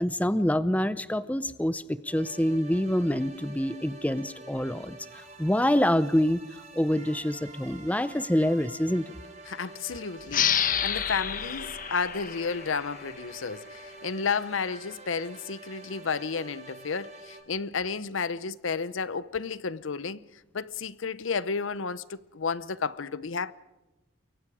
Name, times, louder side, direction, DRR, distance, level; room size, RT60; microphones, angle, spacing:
voice 1, 0.0-6.4 6.7-9.1, equal, 5° left, 0.6 m, -26 dB
sound 1, 2.1-17.4, right 2 dB, 35° right, 4.4 m, -47 dB
voice 2, 9.5-20.2 20.5-23.5, left 5 dB, 85° left, 0.8 m, -32 dB
sound 2, 10.3-13.6, left 9 dB, 45° left, 1.1 m, -29 dB
28.5 x 23.0 x 4.9 m
head